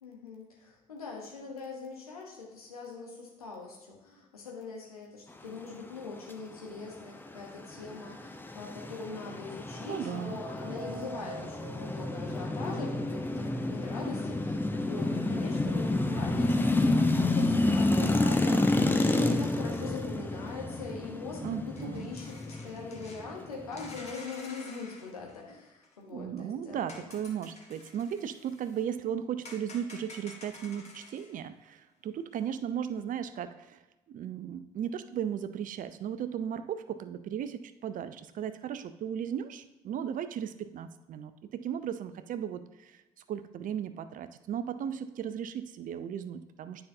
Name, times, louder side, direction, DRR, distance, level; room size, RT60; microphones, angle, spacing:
voice 1, 0.0-27.0, left 4 dB, 85° left, -1 dB, 1.1 m, -42 dB
sound 1, 7.4-24.1, left 2 dB, 10° left, 0.7 m, -29 dB
voice 2, 9.9-10.4 21.4-22.1 26.0-33.8 34.1-43.0 43.3-46.9, right 9 dB, 45° right, 12 dB, 0.5 m, -36 dB
sound 2, 10.1-18.1, right 2 dB, 20° right, 1.4 m, -47 dB
sound 3, 19.7-19.9 21.2-21.3 21.7-23.4 23.7-25.9 26.9-28.8 29.5-31.3 32.4-32.5, left 2 dB, 35° left, 1.5 m, -50 dB
9.5 x 5.4 x 2.7 m, 1.0 s
figure-of-eight pair, 50°, 18 cm